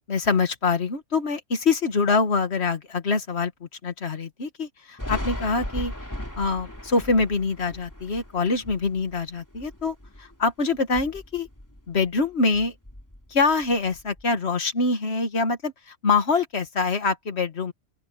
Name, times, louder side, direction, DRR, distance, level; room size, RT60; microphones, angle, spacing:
voice 1, 0.1-5.9 6.4-11.5 11.9-12.7 13.3-17.7, left 4 dB, 55° left, 2.0 m, -25 dB
Thunder, 5.0-10.4 10.8-12.2 12.5-14.2, left 1 dB, 15° left, 3.0 m, -37 dB
open air
omnidirectional pair, 1.3 m